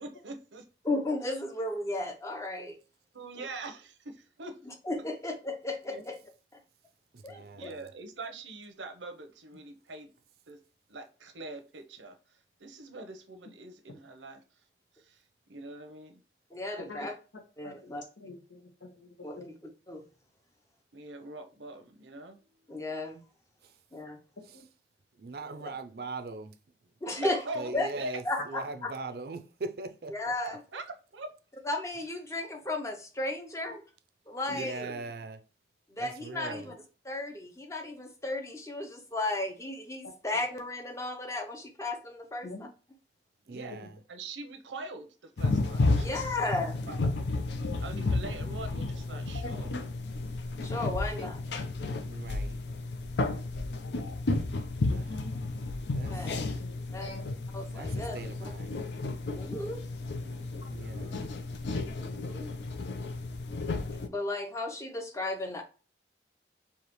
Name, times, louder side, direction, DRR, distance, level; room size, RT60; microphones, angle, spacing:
voice 1, 0.0-0.7 3.1-4.6 5.9-6.0 7.6-10.1 10.5-10.6 10.9-12.2 12.6-14.4 15.0-15.2 15.5-16.2 17.0-17.1 20.9-22.4 27.2-28.2 30.4-31.3 34.5-35.0 36.4-36.8 43.4-43.8 44.1-46.5 46.9-47.0 47.8-49.7 56.4-56.8 60.0-61.2, right 2 dB, 90° right, 0.8 m, -43 dB
voice 2, 0.8-2.8 4.9-6.2 7.2-7.7 16.5-17.1 17.6-18.0 19.2-19.4 19.9-20.0 22.7-23.2 23.9-24.2 27.0-27.4 27.7-27.9 28.3-28.9 30.1-30.6 31.6-33.8 34.3-34.9 35.9-36.7 37.0-42.5 45.9-46.8 50.6-51.4 56.0-56.3 56.9-57.1 57.5-58.2 59.3-59.8 62.0-62.5 64.1-65.6, left 2 dB, 15° left, 0.6 m, -34 dB
voice 3, 7.1-7.9 25.2-26.5 27.6-30.1 34.5-35.4 36.0-36.7 43.5-44.0 52.0-52.6 54.9-55.0 55.9-56.4 57.7-58.8 60.7-61.2, right 3 dB, 55° right, 0.5 m, -41 dB
voice 4, 16.8-17.1 17.3-17.9 18.2-19.5 24.5-24.6 33.6-33.7 40.0-40.1 42.4-42.7 43.7-43.9 47.6-47.7 49.4-50.1 51.2-51.3 53.3-53.4 53.8-54.2 54.9-55.4 57.0-57.4 59.7-59.8 60.6-60.7, left 2 dB, 90° left, 1.4 m, -45 dB
sound 1, 45.4-64.1, left 2 dB, 70° left, 0.5 m, -32 dB
4.8 x 2.8 x 3.0 m
head